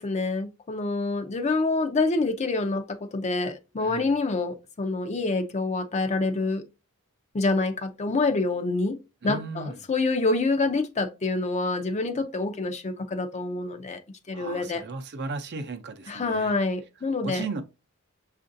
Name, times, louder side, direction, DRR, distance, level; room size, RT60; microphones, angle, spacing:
voice 1, 0.0-6.6 7.3-9.0 9.2-14.0 14.3-14.8 16.1-17.4, left 3 dB, 30° left, 0.5 m, -27 dB
voice 2, 3.8-4.2 9.2-9.8 14.3-16.6 17.2-17.6, right 3 dB, 50° right, 0.6 m, -36 dB
6.6 x 2.5 x 2.5 m
head